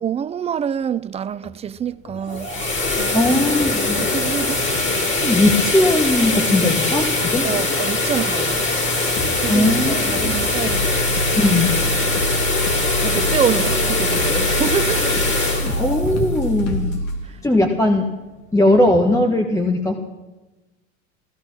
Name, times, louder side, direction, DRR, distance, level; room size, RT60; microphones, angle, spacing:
voice 1, 0.0-2.5 2.9-3.3 4.0-4.6 7.4-8.7 9.4-10.9 13.0-15.2, right 8 dB, 15° right, 0.4 m, -26 dB
Bass drum, 1.3-1.6 2.1-2.5 3.3-3.6 4.1-4.5 5.3-5.6 6.1-6.6 7.0-17.2, equal, 60° left, 2.9 m, -28 dB
sound 1, 2.2-17.1, left 2 dB, 30° left, 3.7 m, -22 dB
voice 2, 3.1-4.0 5.2-7.5 9.2-10.3 11.4-11.7 15.6-17.0 17.4-18.1 18.5-20.0, left 1 dB, 10° left, 1.4 m, -19 dB
16.5 x 13.0 x 6.2 m
hypercardioid pair, 95°, 40 cm